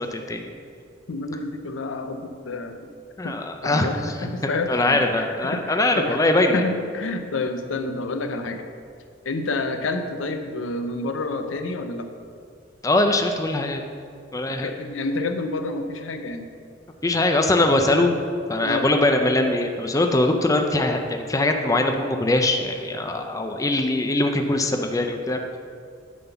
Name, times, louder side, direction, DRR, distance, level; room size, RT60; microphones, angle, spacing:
voice 1, 0.1-0.5 3.2-6.6 12.8-13.8 14.3-14.7 17.0-18.2 18.5-25.6, left 2 dB, 15° left, 4 dB, 0.5 m, -22 dB
voice 2, 1.1-2.9 3.2-3.4 3.6-8.6 9.2-12.0 14.6-16.5 18.6-18.9, left 2 dB, 80° left, 7 dB, 0.7 m, -29 dB
9.3 x 3.9 x 6.8 m, 2.3 s
head